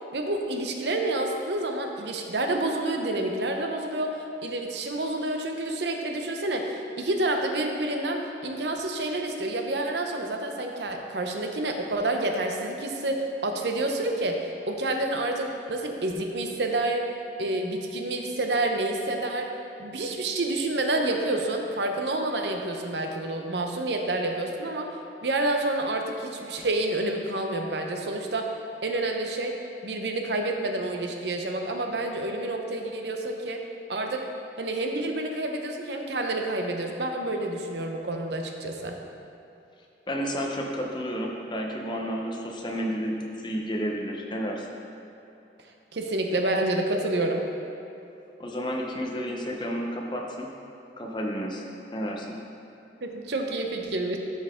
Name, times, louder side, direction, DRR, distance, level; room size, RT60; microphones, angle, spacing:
voice 1, 0.1-17.1 17.4-19.5 19.8-24.9 25.2-28.5 28.8-29.6 29.8-33.6 33.9-34.3 34.6-39.0 45.9-47.4 53.0-54.2, right 2 dB, 75° right, 3 dB, 0.8 m, -28 dB
voice 2, 40.1-44.7 48.4-50.5 51.0-51.6 51.9-52.4, equal, 25° left, 0 dB, 0.8 m, -31 dB
12.5 x 4.8 x 3.7 m, 2.8 s
head